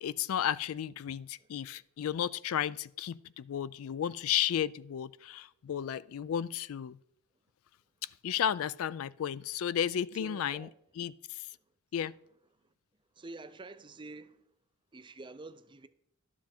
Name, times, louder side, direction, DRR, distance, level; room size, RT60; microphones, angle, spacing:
voice 1, 0.0-7.0 8.0-10.7 11.0-11.5 11.9-12.1, left 9 dB, 65° left, 0.3 m, -33 dB
voice 2, 10.1-10.7 13.2-14.4 14.9-15.9, right 2 dB, 20° right, 0.5 m, -47 dB
11.5 x 7.2 x 4.4 m
head